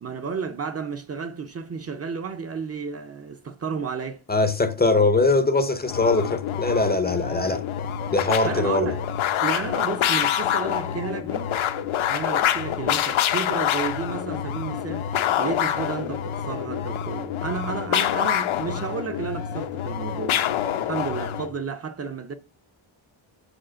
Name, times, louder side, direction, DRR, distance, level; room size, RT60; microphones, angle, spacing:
voice 1, 0.0-4.2 8.4-9.0 9.4-11.5 12.1-15.1 15.4-20.4 20.9-22.3, right 5 dB, 30° right, 0.5 m, -32 dB
voice 2, 4.3-7.6 8.1-8.9, left 3 dB, 20° left, 0.5 m, -21 dB
sound 1, 5.8-21.5, left 10 dB, 85° left, 0.9 m, -26 dB
6.7 x 5.0 x 6.2 m
wide cardioid pair, 175°, 47 cm